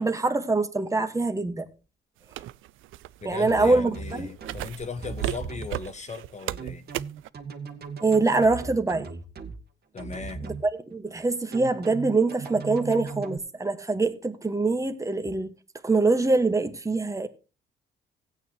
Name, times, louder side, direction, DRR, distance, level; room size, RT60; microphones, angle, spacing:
voice 1, 0.0-1.7 3.2-4.3 8.0-9.1 10.4-10.5 10.9-15.5 15.8-17.3, right 3 dB, 15° right, 1.6 m, -24 dB
sound 1, 2.3-7.3, right 14 dB, 85° right, 0.5 m, -35 dB
voice 2, 3.2-6.9 9.9-10.4, left 4 dB, 35° left, 1.4 m, -37 dB
sound 2, 3.5-4.6 5.0-5.7 6.6-9.6 10.0-10.6 11.5-13.4, right 5 dB, 55° right, 2.1 m, -37 dB
16.5 x 9.0 x 3.0 m
cardioid pair, 90°, 20 cm